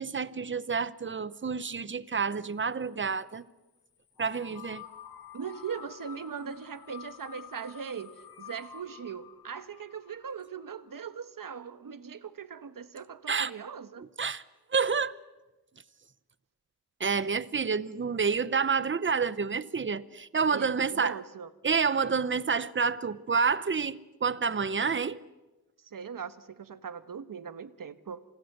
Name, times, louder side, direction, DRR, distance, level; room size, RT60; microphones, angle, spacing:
voice 1, 0.0-3.5 4.2-4.8 13.3-13.5 14.2-14.4 14.7-15.1 17.0-21.2 21.6-25.2, right 5 dB, 30° right, 0.9 m, -29 dB
sound 1, 4.2-11.0, left 9 dB, 75° left, 2.3 m, -49 dB
voice 2, 5.3-14.1 20.5-21.5 25.8-28.2, right 6 dB, 60° right, 1.3 m, -40 dB
28.5 x 28.0 x 6.7 m
wide cardioid pair, 140°, 37 cm